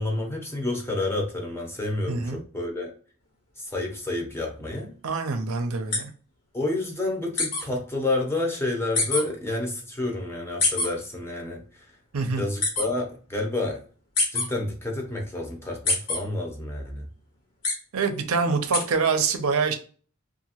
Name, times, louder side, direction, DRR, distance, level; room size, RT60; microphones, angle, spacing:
voice 1, 0.0-2.9 3.6-4.9 6.5-11.8 12.3-13.8 14.3-17.1, left 2 dB, 10° left, 0 dB, 0.6 m, -29 dB
voice 2, 2.1-2.4 5.0-6.1 12.1-12.4 17.9-19.7, right 4 dB, 75° right, 6 dB, 0.5 m, -25 dB
sound 1, 5.9-6.0 7.4-7.6 8.9-9.2 10.6-10.9 12.6-12.8 14.1-14.4 15.8-16.2 17.6-17.7 18.7-18.8, left 3 dB, 75° left, 1.3 m, -23 dB
2.7 x 2.5 x 2.8 m, 0.41 s
head